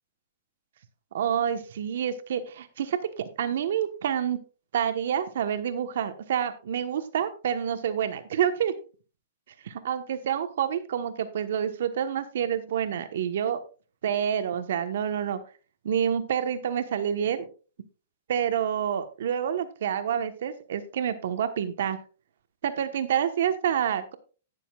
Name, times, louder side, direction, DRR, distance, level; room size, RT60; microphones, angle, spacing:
voice 1, 1.1-4.4 4.7-8.7 9.6-13.6 14.0-15.4 15.8-17.5 18.3-22.0 22.6-24.1, right 9 dB, 65° right, 10 dB, 1.2 m, -28 dB
19.5 x 6.9 x 2.4 m, 0.36 s
hypercardioid pair, 145°, 0 cm